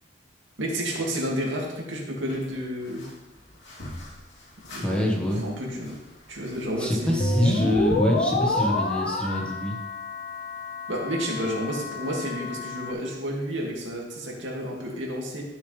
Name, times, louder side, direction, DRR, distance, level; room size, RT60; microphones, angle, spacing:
voice 1, 0.6-3.1 4.7-6.0 6.3-7.5 10.9-15.4, equal, 80° right, -2 dB, 2.4 m, -31 dB
sound 1, 2.3-7.8, left 1 dB, 70° left, 3.0 m, -46 dB
voice 2, 4.8-5.4 6.8-9.8, left 1 dB, 5° left, -2 dB, 1.5 m, -25 dB
sound 2, 7.2-12.9, left 2 dB, 45° left, 0.9 m, -28 dB
12.5 x 7.0 x 3.4 m, 1.0 s
head